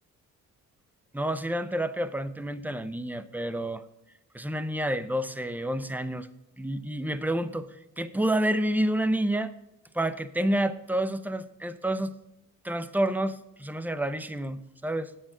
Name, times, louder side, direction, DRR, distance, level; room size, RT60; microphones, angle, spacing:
voice 1, 1.1-3.8 4.3-6.3 6.6-7.7 8.0-9.5 9.9-12.1 12.6-15.1, right 1 dB, 5° right, 14 dB, 0.7 m, -29 dB
8.9 x 7.5 x 5.8 m, 0.91 s
cardioid pair, 90°, 30 cm